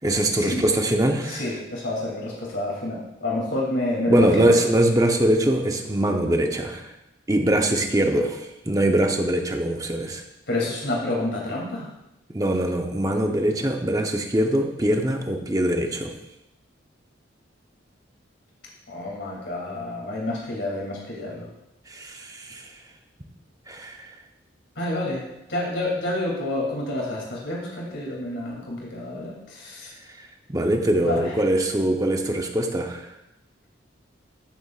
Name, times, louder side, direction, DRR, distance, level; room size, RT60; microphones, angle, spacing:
voice 1, 0.0-1.4 4.1-6.9 7.3-10.2 12.3-16.1 21.9-22.6 23.7-24.1 30.5-33.1, right 1 dB, 20° right, 3 dB, 0.8 m, -22 dB
voice 2, 1.3-4.5 10.5-11.9 18.9-21.5 24.8-25.2 25.5-29.9 30.9-31.2, left 2 dB, 70° left, -3 dB, 2.7 m, -28 dB
14.5 x 7.0 x 2.4 m, 0.87 s
head